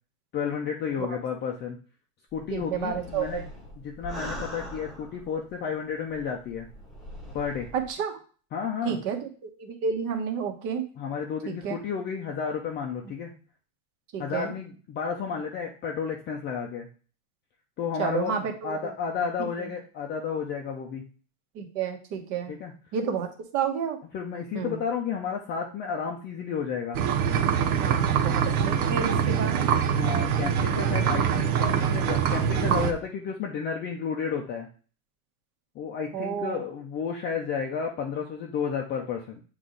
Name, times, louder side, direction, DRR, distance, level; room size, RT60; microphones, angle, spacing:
voice 1, 0.3-1.8 2.3-3.5 3.8-6.7 7.3-7.7 8.5-9.0 11.0-13.3 14.2-16.9 17.8-21.0 22.5-22.7 24.1-27.0 29.9-34.7 35.7-39.4, left 6 dB, 25° left, 1 dB, 0.6 m, -32 dB
sound 1, 2.3-5.5 6.1-7.9, equal, ahead, 1.1 m, -41 dB
voice 2, 2.5-3.4 7.7-8.2 8.8-10.8 11.5-11.8 14.1-14.5 18.0-18.9 19.4-19.5 21.5-22.5 22.9-23.3 23.5-24.0 24.5-24.8 27.8-29.6 36.1-36.6, right 7 dB, 45° right, 5 dB, 1.3 m, -30 dB
sound 2, 26.9-32.9, right 8 dB, 85° right, 1.0 m, -24 dB
7.8 x 3.2 x 3.8 m, 0.39 s
supercardioid pair, 150°, 43 cm